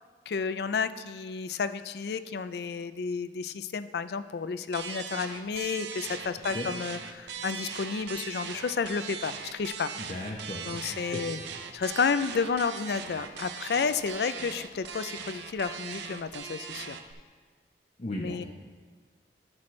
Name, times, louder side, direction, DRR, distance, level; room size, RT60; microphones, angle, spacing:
voice 1, 0.3-9.9 10.7-11.4 11.7-17.0 18.2-18.4, left 5 dB, 65° left, 12 dB, 0.4 m, -31 dB
sound 1, 4.7-17.1, right 6 dB, 75° right, 0.6 m, -40 dB
voice 2, 10.0-11.2 18.0-18.5, left 1 dB, 40° left, -2 dB, 0.7 m, -36 dB
13.5 x 6.1 x 3.2 m, 1.5 s
head